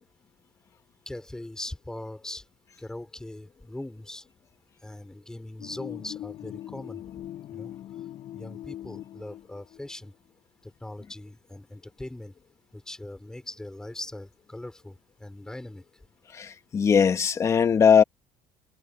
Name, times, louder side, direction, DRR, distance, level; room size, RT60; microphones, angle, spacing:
voice 1, 1.0-2.4 2.8-4.2 4.8-7.0 7.5-7.7 8.3-10.1 10.6-12.3 12.7-15.8, left 1 dB, 5° left, 5.1 m, -40 dB
sound 1, 5.6-10.0, left 12 dB, 50° left, 6.4 m, -41 dB
voice 2, 16.3-18.0, left 7 dB, 30° left, 2.0 m, -20 dB
cardioid pair, 155°, 11 cm